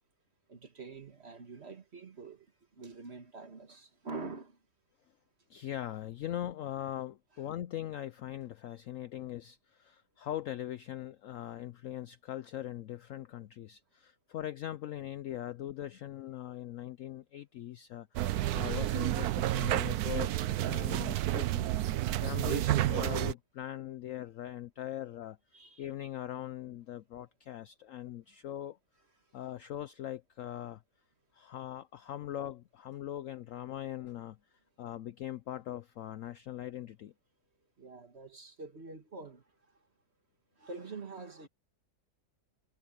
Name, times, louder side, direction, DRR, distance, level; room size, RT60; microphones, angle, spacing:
voice 1, 0.5-2.5 2.7-4.6 25.5-25.9 37.8-39.4 40.6-41.5, right 3 dB, 40° right, 2.1 m, -45 dB
voice 2, 5.5-22.0 22.2-25.4 25.8-28.8 29.3-30.8 31.3-37.1, left 12 dB, 70° left, 0.8 m, -41 dB
sound 1, 18.2-23.3, right 14 dB, 70° right, 1.1 m, -30 dB
omnidirectional pair, 1.8 m